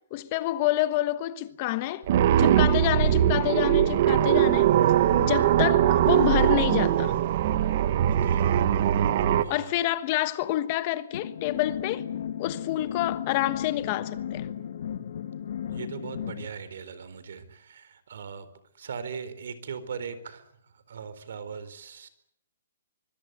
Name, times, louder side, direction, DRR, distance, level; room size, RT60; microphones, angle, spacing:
voice 1, 0.1-2.1 2.4-4.7 5.2-7.1 9.5-12.0 12.4-14.5, left 15 dB, 30° left, 1.2 m, -28 dB
sound 1, 2.1-9.4, right 10 dB, 40° right, 1.4 m, -21 dB
voice 2, 8.1-8.5 9.4-9.7 15.7-18.5 18.7-22.1, right 6 dB, 60° right, 4.2 m, -39 dB
sound 2, 11.1-16.5, left 9 dB, 55° left, 1.9 m, -35 dB
25.0 x 22.5 x 8.2 m
hypercardioid pair, 170°, 0 cm